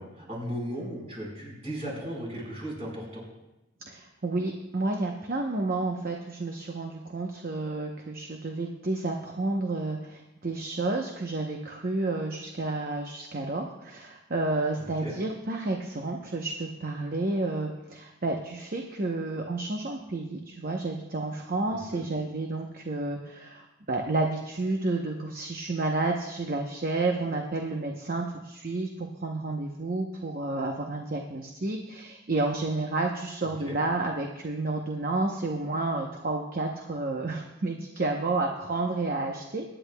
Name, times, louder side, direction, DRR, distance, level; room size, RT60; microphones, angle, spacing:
voice 1, 0.0-3.2 14.8-15.1 21.7-22.0 33.6-33.8, equal, 30° right, -3 dB, 4.5 m, -36 dB
voice 2, 3.9-39.6, right 2 dB, 45° right, 2 dB, 0.8 m, -30 dB
23.0 x 10.0 x 2.2 m, 0.95 s
head